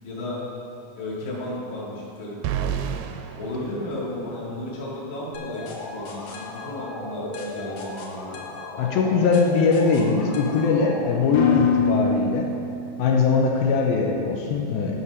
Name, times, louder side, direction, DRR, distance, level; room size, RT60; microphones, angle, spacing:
voice 1, 0.0-0.4 1.0-2.8 3.3-5.6 5.9-8.4 11.2-11.3, left 1 dB, 40° left, -6 dB, 1.4 m, -33 dB
sound 1, 2.4-4.6, right 9 dB, 80° right, 2.3 m, -31 dB
sound 2, 5.3-13.1, left 5 dB, 65° left, 2.2 m, -29 dB
voice 2, 8.8-12.5 13.0-15.0, left 4 dB, 80° left, 0 dB, 2.5 m, -21 dB
9.8 x 5.6 x 5.4 m, 2.7 s
omnidirectional pair, 4.4 m